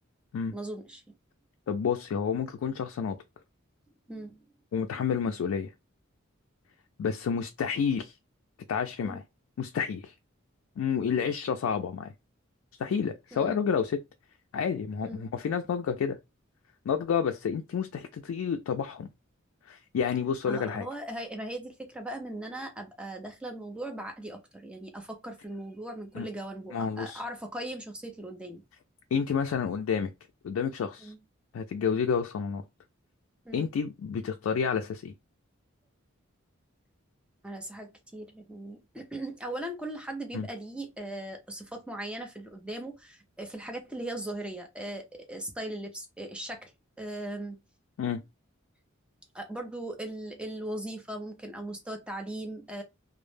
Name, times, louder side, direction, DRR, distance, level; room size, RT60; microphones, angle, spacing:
voice 1, 0.5-1.0 4.1-4.4 9.0-9.2 13.3-13.6 15.0-15.2 20.5-28.6 31.0-31.2 33.4-33.7 37.4-46.7 47.0-47.6 49.3-52.8, right 1 dB, 5° right, 0.5 m, -39 dB
voice 2, 1.7-3.2 4.7-5.7 7.0-8.1 8.7-9.2 9.6-10.1 10.8-12.1 12.8-14.0 14.5-16.2 16.9-19.1 19.7-20.9 26.1-26.3 26.7-27.2 29.1-30.1 30.4-31.1 31.5-32.6 33.5-35.1 40.3-40.5 48.0-48.2, left 6 dB, 80° left, 0.3 m, -29 dB
2.0 x 2.0 x 3.1 m
head